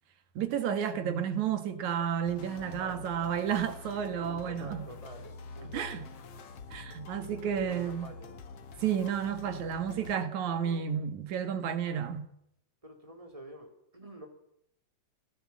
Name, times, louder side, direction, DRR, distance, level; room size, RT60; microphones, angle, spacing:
voice 1, 0.4-4.8 5.7-6.0 6.7-8.1 8.8-12.3, right 8 dB, 65° right, 2.8 m, -31 dB
sound 1, 2.3-10.2, left 4 dB, 55° left, 2.2 m, -46 dB
voice 2, 4.1-6.0 7.4-8.4 10.6-10.8 11.8-12.0 12.8-14.3, right 1 dB, 10° right, 4.0 m, -48 dB
28.0 x 16.5 x 7.5 m
omnidirectional pair, 3.8 m